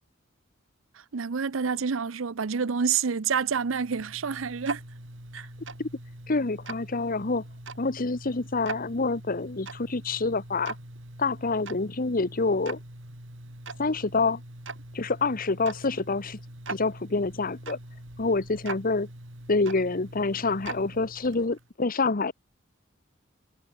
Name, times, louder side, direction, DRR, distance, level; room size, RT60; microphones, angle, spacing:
voice 1, 1.1-4.8 5.3-5.5, right 6 dB, 85° right, 0.7 m, -28 dB
Tick-tock, 3.4-21.7, right 2 dB, 70° right, 6.6 m, -42 dB
voice 2, 6.3-7.4 7.8-10.7 11.2-12.8 13.8-14.4 14.9-16.4 16.7-17.8 18.2-19.1 19.5-22.3, left 3 dB, 45° left, 1.0 m, -27 dB
head